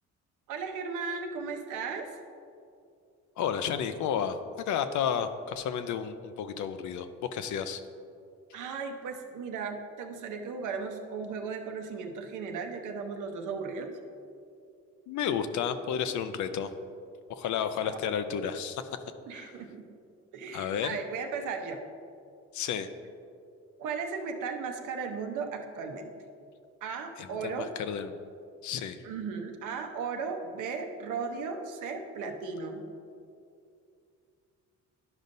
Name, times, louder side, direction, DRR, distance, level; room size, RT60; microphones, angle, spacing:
voice 1, 0.5-2.2 8.5-13.9 17.5-18.1 19.3-19.9 20.3-21.8 23.8-26.1 26.8-27.7 29.0-32.8, right 5 dB, 85° right, 4 dB, 0.8 m, -36 dB
voice 2, 3.4-4.4 4.7-7.1 7.3-7.8 15.1-16.7 17.3-18.8 19.3-19.5 20.5-20.9 22.5-22.9 27.2-28.1 28.6-29.0, left 8 dB, 75° left, 10 dB, 0.5 m, -31 dB
11.5 x 5.2 x 2.6 m, 2.5 s
cardioid pair, 90°, 30 cm